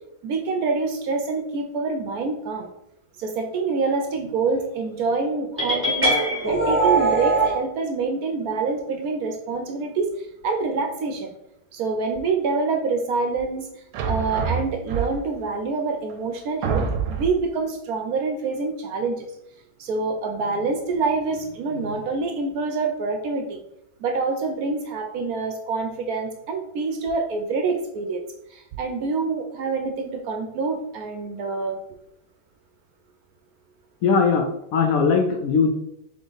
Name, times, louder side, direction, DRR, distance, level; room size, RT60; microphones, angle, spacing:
voice 1, 0.2-2.7 3.2-6.2 6.5-11.3 11.7-19.3 19.8-23.6 24.0-28.2 28.5-31.8, right 4 dB, 70° right, 5 dB, 1.0 m, -26 dB
sound 1, 5.6-7.6, right 2 dB, 10° right, 1.0 m, -21 dB
sound 2, 13.9-15.5 16.1-16.2 16.6-17.5, right 6 dB, 85° right, 1.3 m, -26 dB
voice 2, 34.0-35.7, left 5 dB, 70° left, 2 dB, 0.9 m, -20 dB
3.7 x 3.6 x 3.8 m, 0.79 s
omnidirectional pair, 1.9 m